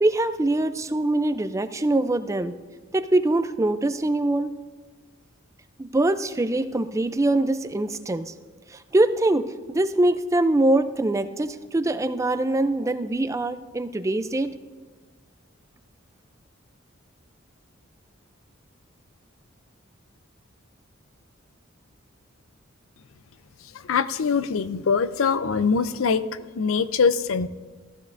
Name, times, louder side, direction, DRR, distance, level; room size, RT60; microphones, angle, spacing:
voice 1, 0.0-2.5 2.9-4.5 5.8-8.3 8.7-14.5, right 2 dB, 15° right, 11 dB, 0.4 m, -23 dB
voice 2, 23.7-27.5, left 5 dB, 80° left, 14 dB, 0.5 m, -23 dB
15.0 x 14.5 x 2.6 m, 1.3 s
head